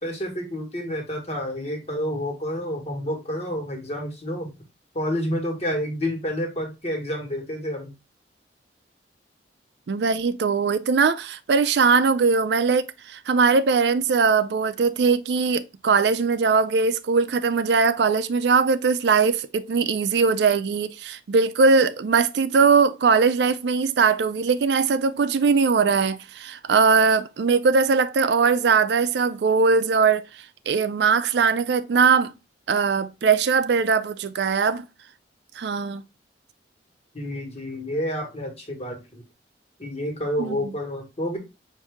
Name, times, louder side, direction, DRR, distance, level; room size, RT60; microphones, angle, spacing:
voice 1, 0.0-4.5 4.9-7.9 37.1-39.2 39.8-41.4, equal, 35° left, 1.5 m, -29 dB
voice 2, 9.9-30.2 30.7-32.3 32.7-34.9 35.6-36.0 40.4-40.6, right 5 dB, 65° right, 0.4 m, -20 dB
5.7 x 2.7 x 3.4 m
head